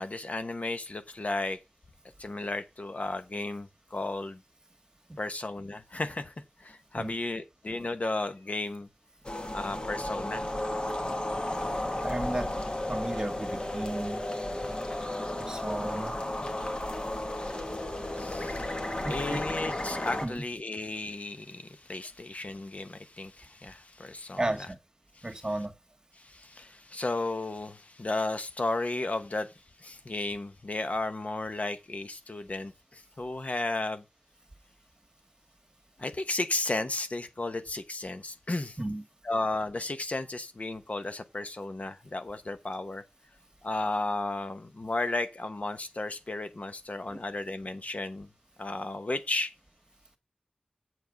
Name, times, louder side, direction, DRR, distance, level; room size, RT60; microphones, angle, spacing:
voice 1, 0.0-1.6 2.2-4.4 5.2-6.3 6.6-8.9 9.5-10.4 18.1-24.4 26.2-29.5 29.8-34.0 36.0-38.8 39.2-43.0 43.6-48.3 48.6-49.5, left 2 dB, 55° left, 1.1 m, -34 dB
sound 1, 9.2-20.3, left 1 dB, 35° left, 1.7 m, -33 dB
voice 2, 12.0-12.5 12.9-14.2 15.4-16.1 19.0-19.4 20.2-20.4 24.4-24.8 25.2-25.7 38.8-39.0 47.1-47.2, right 1 dB, 25° right, 1.8 m, -33 dB
7.9 x 7.3 x 5.2 m
wide cardioid pair, 65°, 3 cm